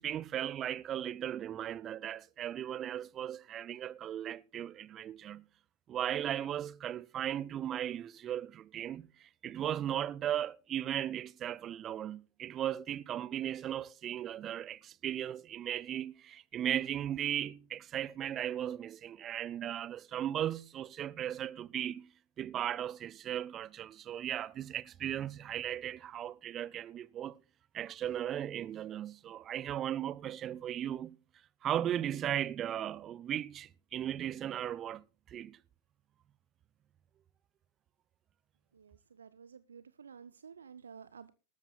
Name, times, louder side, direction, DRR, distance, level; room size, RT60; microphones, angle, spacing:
voice 1, 0.0-5.5 5.9-22.1 22.4-27.4 27.7-31.2 31.6-35.6, right 10 dB, 30° right, 0.6 m, -37 dB
voice 2, 38.7-41.3, right 6 dB, 70° right, 0.5 m, -52 dB
20.0 x 13.0 x 2.2 m
figure-of-eight pair, 90°, 0 cm